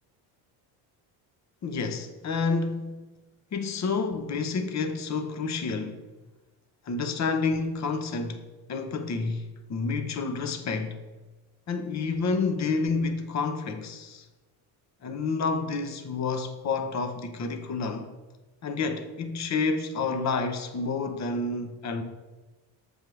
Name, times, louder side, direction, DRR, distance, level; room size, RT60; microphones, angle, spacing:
voice 1, 1.6-3.0 3.5-6.1 6.9-8.4 8.7-11.0 11.7-14.3 15.0-18.1 18.6-22.0, left 4 dB, 40° left, 0.9 m, -29 dB
7.1 x 3.6 x 6.2 m
supercardioid pair, 80°, 43 cm